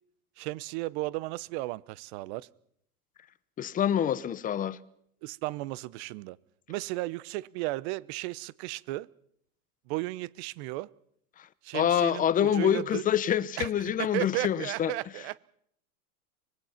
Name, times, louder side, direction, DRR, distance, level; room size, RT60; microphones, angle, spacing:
voice 1, 0.4-2.5 5.2-6.4 6.7-9.1 9.9-10.9 11.6-13.0 13.6-15.4, right 19 dB, 45° right, 0.8 m, -34 dB
voice 2, 3.6-4.8 11.7-14.9, left 9 dB, 20° left, 0.8 m, -26 dB
25.0 x 21.0 x 5.8 m
hypercardioid pair, 130°, 45 cm